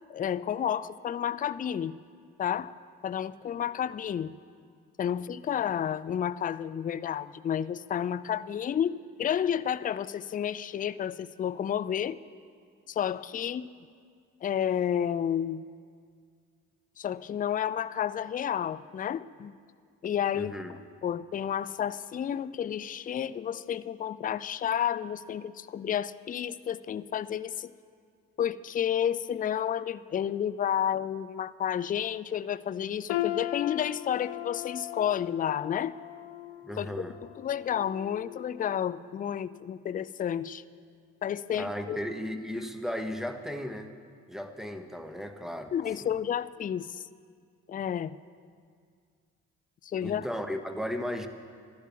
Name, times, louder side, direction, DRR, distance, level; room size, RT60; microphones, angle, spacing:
voice 1, 0.1-2.0 2.4-2.8 3.0-4.3 5.0-12.2 12.9-13.7 14.4-15.6 17.0-19.5 20.0-20.6 21.0-27.7 28.4-35.9 36.8-36.9 37.4-40.6 41.2-42.0 45.7-47.1 47.7-48.2 49.8-50.3, left 9 dB, 20° left, 17 dB, 0.3 m, -31 dB
voice 2, 20.3-20.8 36.6-37.2 41.5-43.9 44.3-45.7 46.0-46.1 50.0-51.3, equal, ahead, 7 dB, 1.2 m, -35 dB
sound 1, 33.1-39.0 39.4-39.7 40.4-40.5, left 15 dB, 65° left, 0.6 m, -38 dB
11.5 x 9.6 x 8.2 m, 2.1 s
hypercardioid pair, 45°, 47 cm